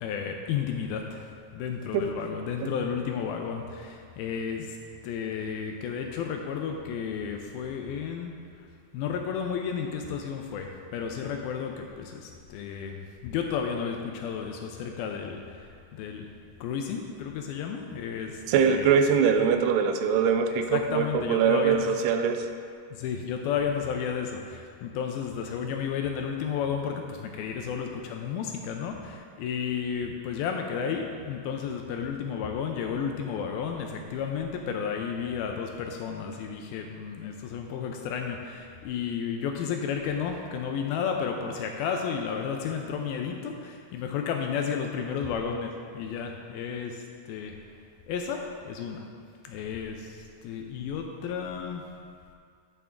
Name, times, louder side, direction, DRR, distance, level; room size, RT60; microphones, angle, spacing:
voice 1, 0.0-4.8 5.0-8.7 8.9-16.3 16.6-18.9 20.5-21.9 22.9-47.6 48.1-49.0 49.4-51.8, left 7 dB, 80° left, 3 dB, 2.2 m, -32 dB
voice 2, 18.5-22.5, right 6 dB, 90° right, 6 dB, 2.7 m, -23 dB
10.5 x 6.8 x 3.7 m, 2.2 s
omnidirectional pair, 4.6 m